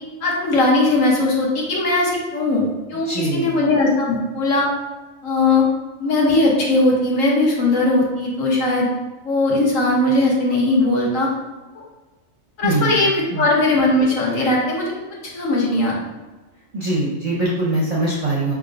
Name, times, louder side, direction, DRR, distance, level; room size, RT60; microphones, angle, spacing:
voice 1, 0.2-4.7 5.2-5.6 6.0-8.9 9.2-11.3 12.6-14.9 15.3-15.9, left 2 dB, 70° left, -3 dB, 1.4 m, -19 dB
voice 2, 3.0-3.6 12.6-13.5 16.7-18.5, right 2 dB, 40° right, -6 dB, 0.6 m, -23 dB
4.8 x 3.5 x 2.5 m, 1.2 s
omnidirectional pair, 1.4 m